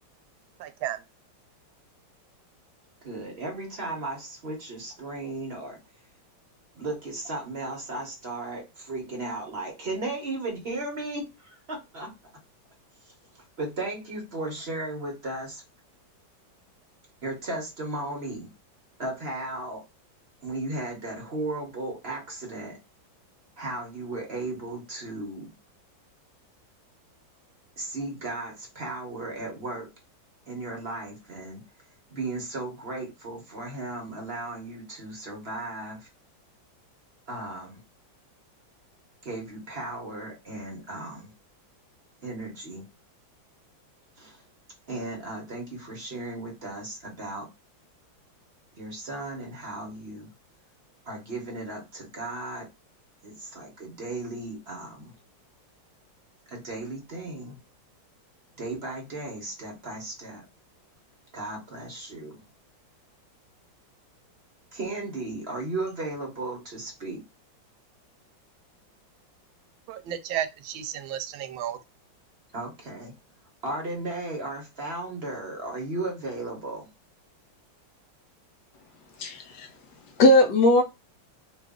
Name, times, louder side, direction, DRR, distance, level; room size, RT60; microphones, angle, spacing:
voice 1, 0.6-1.0 69.9-71.8, right 10 dB, 90° right, 1.4 m, -33 dB
voice 2, 3.0-5.8 6.7-12.1 13.0-13.1 13.6-15.6 17.2-18.5 19.0-19.8 20.4-22.8 23.6-25.5 27.8-29.9 30.5-31.6 32.1-36.1 37.3-37.8 39.2-41.3 42.2-42.9 44.2-44.4 44.9-47.5 48.7-50.3 51.0-52.7 53.2-55.1 56.5-57.6 58.6-60.4 61.3-62.4 64.7-67.2 72.5-73.1 73.6-76.9, right 2 dB, 40° right, 0.9 m, -35 dB
voice 3, 79.2-79.7 80.2-80.8, left 1 dB, 70° left, 1.1 m, -18 dB
3.2 x 2.3 x 3.5 m
omnidirectional pair, 2.1 m